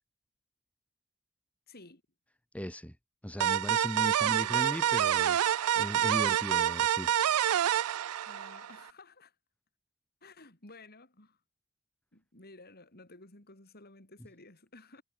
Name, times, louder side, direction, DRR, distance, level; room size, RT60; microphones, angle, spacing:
voice 1, 1.7-2.0 4.2-4.8 8.2-9.3 10.2-11.4 12.1-15.0, left 2 dB, 45° left, 4.1 m, -53 dB
voice 2, 2.5-3.0 3.2-7.1, equal, 5° left, 1.7 m, -37 dB
sound 1, 3.4-8.8, right 10 dB, 75° right, 0.4 m, -27 dB
head